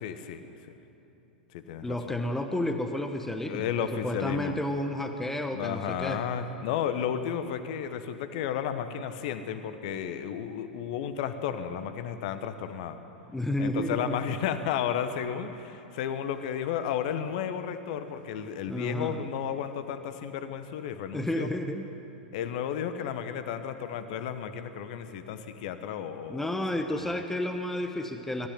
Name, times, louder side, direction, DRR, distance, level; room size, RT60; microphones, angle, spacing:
voice 1, 0.0-0.4 1.5-2.1 3.5-4.6 5.5-13.0 13.6-21.5 22.3-26.6 26.9-27.2, left 8 dB, 50° left, 10 dB, 1.3 m, -33 dB
voice 2, 1.8-6.2 13.3-14.3 18.7-19.3 21.1-21.9 26.3-28.5, left 1 dB, 5° left, 5 dB, 1.2 m, -31 dB
22.5 x 13.5 x 9.5 m, 3.0 s
figure-of-eight pair, 95°, 5 cm